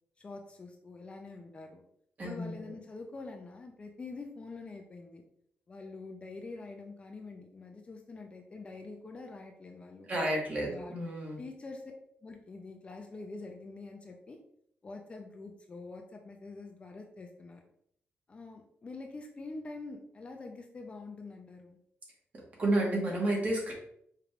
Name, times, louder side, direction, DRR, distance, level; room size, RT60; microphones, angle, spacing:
voice 1, 0.2-1.8 2.2-5.2 5.7-10.1 10.6-11.0 11.4-11.9 12.2-14.4 14.8-17.6 18.3-21.8, left 3 dB, 30° left, 4 dB, 0.5 m, -45 dB
voice 2, 2.2-2.7 10.0-11.4 22.6-23.7, right 1 dB, 40° right, -2 dB, 1.4 m, -31 dB
5.0 x 3.3 x 2.4 m, 0.68 s
wide cardioid pair, 145°, 4 cm